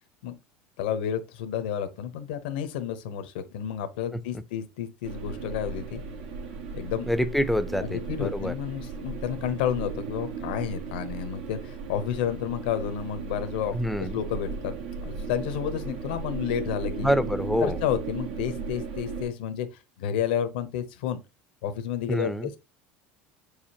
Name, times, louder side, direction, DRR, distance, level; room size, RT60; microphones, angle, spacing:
voice 1, 0.8-6.0 6.7-7.1 7.9-14.7 15.0-17.1 17.6-21.2 21.6-22.6, left 9 dB, 90° left, 0.8 m, -31 dB
voice 2, 4.1-4.4 7.1-8.5 13.7-14.2 17.0-17.8 22.1-22.5, equal, ahead, 0.5 m, -27 dB
sound 1, 5.0-19.3, right 4 dB, 85° right, 1.5 m, -36 dB
6.9 x 4.9 x 2.8 m
supercardioid pair, 130°, 5 cm